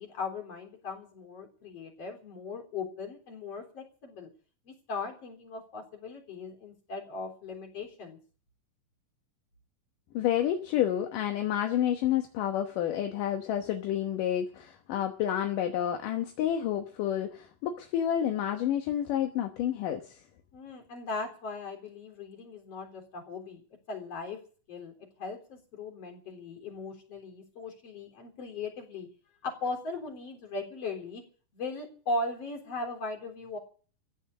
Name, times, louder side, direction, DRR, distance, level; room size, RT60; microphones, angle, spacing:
voice 1, 0.0-4.3 4.7-8.2 20.5-24.4 24.7-29.1 29.4-31.2 31.5-33.6, left 3 dB, 45° left, 4.6 m, -38 dB
voice 2, 10.1-20.1, left 10 dB, 75° left, 2.7 m, -29 dB
15.5 x 9.8 x 8.3 m
omnidirectional pair, 4.0 m